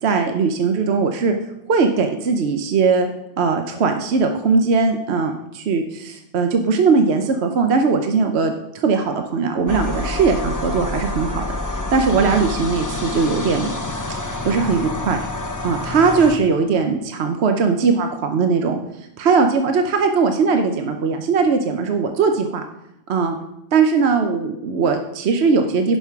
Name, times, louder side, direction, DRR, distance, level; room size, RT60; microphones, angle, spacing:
voice 1, 0.0-1.3 1.7-3.1 3.4-11.4 11.7-13.7 14.1-14.2 14.4-15.2 15.6-18.8 19.2-22.6 23.1-23.4 23.7-26.0, right 4 dB, 65° right, 5 dB, 1.1 m, -19 dB
sound 1, 9.7-16.4, left 2 dB, 20° left, 0.8 m, -27 dB
10.5 x 5.8 x 5.8 m, 0.86 s
omnidirectional pair, 1.2 m